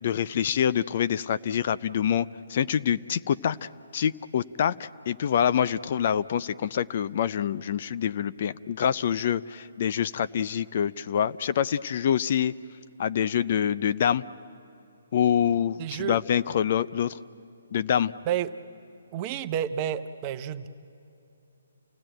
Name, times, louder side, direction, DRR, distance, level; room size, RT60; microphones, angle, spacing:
voice 1, 0.0-12.5 13.0-14.2 15.1-17.2 17.7-18.1, left 9 dB, 45° left, 15 dB, 0.5 m, -26 dB
voice 2, 15.8-16.2 18.3-18.5 19.1-20.7, right 10 dB, 30° right, 11 dB, 0.8 m, -30 dB
28.5 x 16.5 x 9.0 m, 2.8 s
figure-of-eight pair, 140°, 0 cm